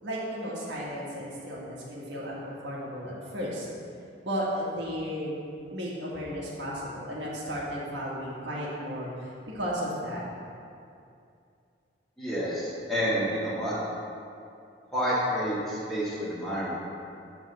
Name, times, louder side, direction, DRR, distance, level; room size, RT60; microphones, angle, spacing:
voice 1, 0.0-3.7 4.2-5.4 5.7-9.3 9.5-10.2, equal, 80° right, -6 dB, 1.5 m, -34 dB
voice 2, 12.2-13.7 14.9-16.7, equal, ahead, -10 dB, 1.6 m, -29 dB
7.4 x 3.5 x 6.5 m, 2.5 s
head